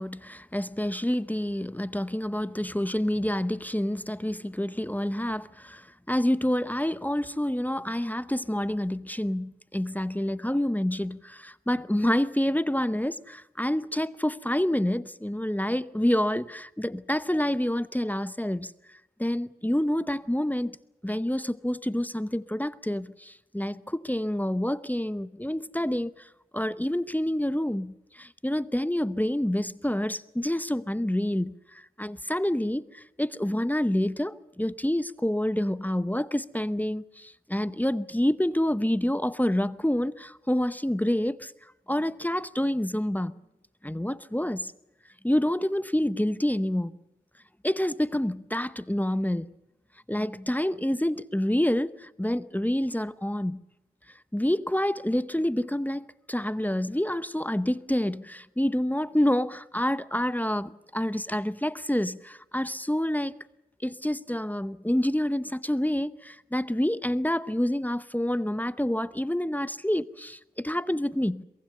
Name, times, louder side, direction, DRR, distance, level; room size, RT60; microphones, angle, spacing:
voice 1, 0.0-18.7 19.2-20.8 21.0-26.1 26.5-31.6 32.0-41.5 41.9-43.4 43.8-44.7 45.2-47.0 47.6-49.5 50.1-53.6 54.3-63.3 63.8-71.4, left 1 dB, 10° left, 0.8 m, -28 dB
23.0 x 22.5 x 6.7 m
wide cardioid pair, 65°, 17 cm